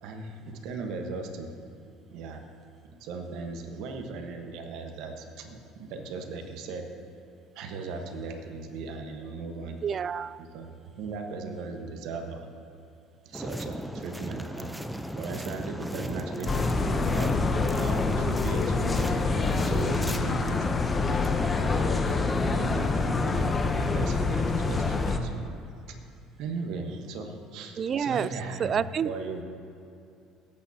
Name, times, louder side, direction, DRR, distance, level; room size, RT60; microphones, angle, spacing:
voice 1, 0.0-1.5 2.1-2.4 3.0-6.9 7.5-9.8 10.4-10.7 11.0-12.5 13.2-14.7 15.1-17.4 17.7-20.7 21.0-21.2 22.0-25.5 26.4-28.7 29.0-29.4, right 4 dB, 70° right, 4 dB, 1.2 m, -38 dB
voice 2, 9.8-10.4 27.8-28.3 28.6-29.1, right 7 dB, 45° right, 17 dB, 0.3 m, -28 dB
sound 1, 13.3-20.2, equal, ahead, 0.6 m, -36 dB
sound 2, 16.5-25.2, left 3 dB, 25° left, 0.8 m, -26 dB
Wind instrument woodwind instrument, 16.6-24.5, left 2 dB, 75° left, 2.2 m, -43 dB
17.0 x 8.7 x 2.8 m, 2.5 s
supercardioid pair, 80°, 0 cm